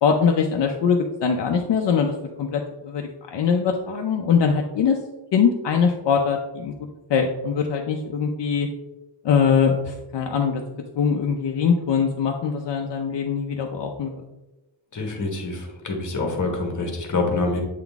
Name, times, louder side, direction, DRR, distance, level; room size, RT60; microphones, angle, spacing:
voice 1, 0.0-5.0 5.3-6.7 7.1-8.7 9.2-10.6 11.0-14.2, left 6 dB, 75° left, 2 dB, 0.7 m, -22 dB
voice 2, 14.9-17.6, left 3 dB, 45° left, 2 dB, 1.4 m, -26 dB
8.2 x 3.9 x 3.5 m, 1.0 s
wide cardioid pair, 155°, 42 cm